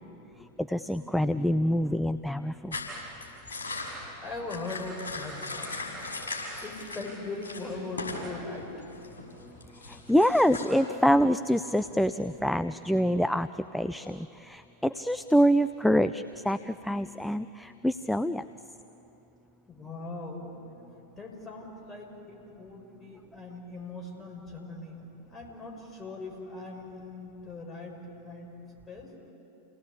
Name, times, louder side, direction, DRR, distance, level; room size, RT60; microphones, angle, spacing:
voice 1, 0.0-0.5 4.2-6.1 6.6-8.7 12.8-12.9 19.7-20.7 21.2-28.5 28.9-29.1, left 2 dB, 15° left, 0 dB, 6.0 m, -40 dB
voice 2, 0.6-2.8 9.9-18.4, equal, ahead, 11 dB, 0.5 m, -26 dB
sound 1, 2.7-7.1 7.4-8.3 8.5-10.6, left 3 dB, 70° left, 6.2 m, -38 dB
29.0 x 18.5 x 8.5 m, 2.9 s
figure-of-eight pair, 90°, 0 cm